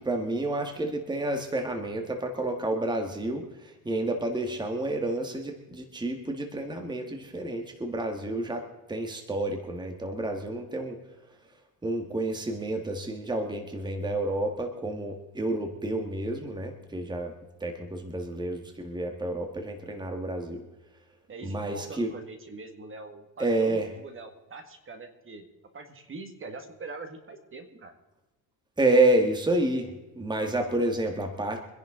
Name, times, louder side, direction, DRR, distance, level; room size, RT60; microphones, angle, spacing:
voice 1, 0.0-3.5 3.9-8.6 8.9-11.0 11.8-17.3 17.6-20.6 21.4-22.1 23.4-23.9 28.8-29.9 30.2-31.6, right 2 dB, 10° right, 4 dB, 1.8 m, -29 dB
voice 2, 21.3-25.5 25.7-27.9, right 3 dB, 30° right, 6 dB, 2.0 m, -43 dB
25.0 x 10.5 x 3.9 m, 1.1 s
cardioid pair, 120°, 39 cm